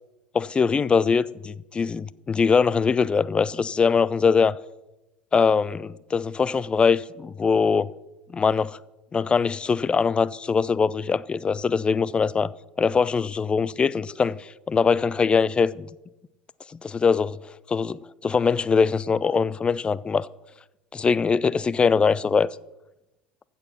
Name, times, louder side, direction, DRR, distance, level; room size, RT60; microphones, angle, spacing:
voice 1, 0.3-4.6 5.3-7.9 8.3-8.8 9.1-12.5 12.8-15.9 16.8-17.4 17.7-20.3 20.9-22.5, left 5 dB, 20° left, 0.4 m, -22 dB
15.0 x 7.0 x 6.0 m
figure-of-eight pair, 70°, 5 cm